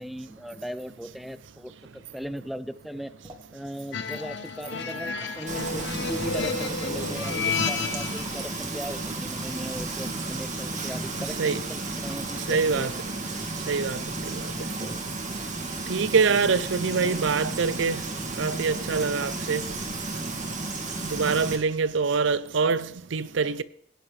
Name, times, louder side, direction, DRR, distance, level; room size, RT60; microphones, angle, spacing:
voice 1, 0.0-3.1 3.5-12.9 14.1-14.2 16.5-17.3, equal, ahead, 0.4 m, -38 dB
sound 1, 2.9-15.8, right 2 dB, 20° right, 1.9 m, -52 dB
sound 2, 3.9-8.4, left 4 dB, 60° left, 0.9 m, -31 dB
Frying (food), 5.5-21.6, right 2 dB, 40° right, 2.1 m, -33 dB
voice 2, 12.5-12.9 13.7-14.0 14.3-14.4 15.9-18.0 18.4-19.6 21.1-23.6, right 5 dB, 70° right, 0.5 m, -24 dB
17.5 x 10.0 x 3.3 m
head